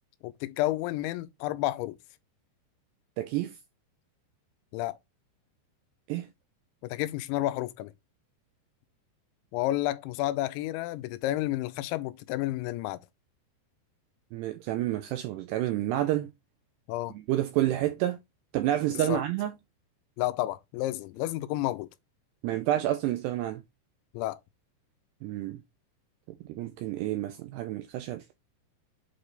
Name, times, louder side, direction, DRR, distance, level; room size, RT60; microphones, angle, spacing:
voice 1, 0.2-2.0 4.7-5.0 6.8-7.9 9.5-13.0 16.9-17.1 19.1-19.2 20.2-21.9 24.1-24.4, left 16 dB, 85° left, 2.8 m, -30 dB
voice 2, 3.2-3.5 6.1-6.3 14.3-16.3 17.1-18.2 18.5-19.5 22.4-23.6 25.2-25.6 26.5-28.2, right 13 dB, 90° right, 2.4 m, -29 dB
8.0 x 3.3 x 3.9 m
omnidirectional pair, 5.4 m